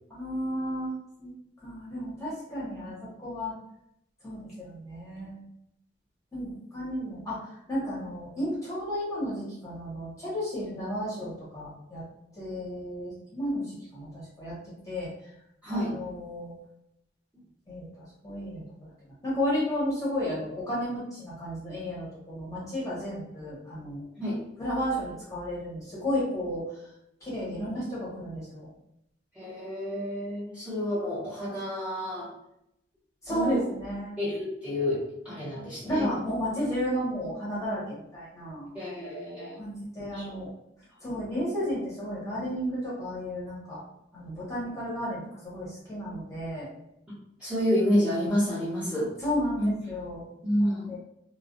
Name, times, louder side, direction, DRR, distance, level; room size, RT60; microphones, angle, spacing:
voice 1, 0.1-0.9 1.2-1.3 1.6-3.5 4.2-5.4 6.3-12.0 12.4-14.6 14.9-15.1 15.7-16.5 17.7-17.9 18.2-18.9 19.2-24.1 24.6-26.6 27.2-28.7 33.2-34.1 35.9-38.7 39.6-40.5 41.0-43.8 44.1-46.7 49.2-50.2 50.9-51.0, equal, 20° left, -7 dB, 0.9 m, -33 dB
voice 2, 15.6-16.0 24.2-24.4 29.3-32.3 33.3-33.6 34.2-36.1 38.7-40.4 47.4-49.1 49.6-49.7 50.4-50.9, equal, 5° right, -10 dB, 0.8 m, -29 dB
2.3 x 2.1 x 2.5 m, 0.79 s
head